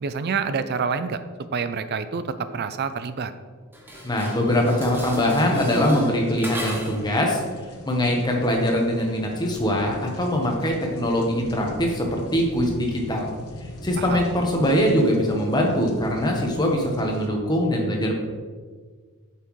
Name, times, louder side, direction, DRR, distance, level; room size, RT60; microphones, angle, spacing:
voice 1, 0.0-1.2 1.5-2.2 2.5-3.3 14.0-14.3, right 5 dB, 45° right, 12 dB, 0.4 m, -27 dB
Dishes pots and pans, 3.7-7.1, right 1 dB, 10° right, 0.9 m, -33 dB
voice 2, 4.0-7.4 7.9-13.3 13.8-18.2, equal, 20° left, 0 dB, 1.0 m, -22 dB
sound 1, 4.5-17.3, left 1 dB, 80° left, 0.9 m, -42 dB
7.5 x 5.8 x 3.1 m, 1.5 s
head